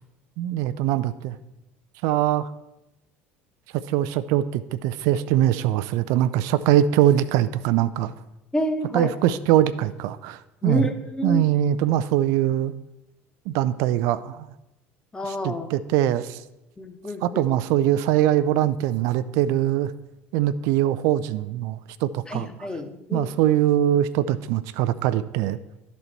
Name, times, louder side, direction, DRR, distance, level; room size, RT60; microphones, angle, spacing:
voice 1, 0.4-1.4 2.0-2.5 3.7-8.1 8.9-10.9 11.2-12.7 13.5-14.5 15.2-16.4 17.2-19.9 20.3-22.7 23.1-25.6, right 12 dB, 55° right, 14 dB, 0.3 m, -22 dB
voice 2, 8.5-9.1 10.6-11.4 15.1-15.7 16.8-17.4 22.3-23.3, left 1 dB, 10° left, 6 dB, 1.0 m, -28 dB
11.5 x 4.1 x 4.5 m, 0.94 s
figure-of-eight pair, 65°, 7 cm